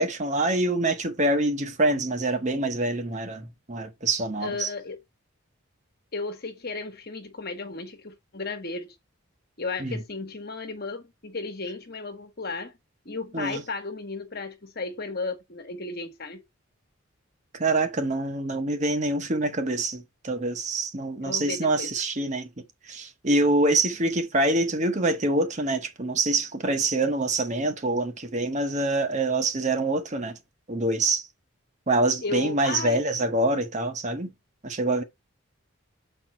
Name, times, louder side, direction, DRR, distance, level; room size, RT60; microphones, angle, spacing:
voice 1, 0.0-4.7 9.8-10.0 13.3-13.6 17.5-22.5 22.9-30.4 30.7-31.3 31.9-34.3 34.6-35.0, right 2 dB, 35° right, 1.0 m, -25 dB
voice 2, 4.4-5.0 6.1-9.0 9.6-12.7 13.0-16.4 21.2-21.9 32.2-33.0, left 3 dB, 45° left, 1.3 m, -34 dB
7.1 x 4.5 x 4.3 m
head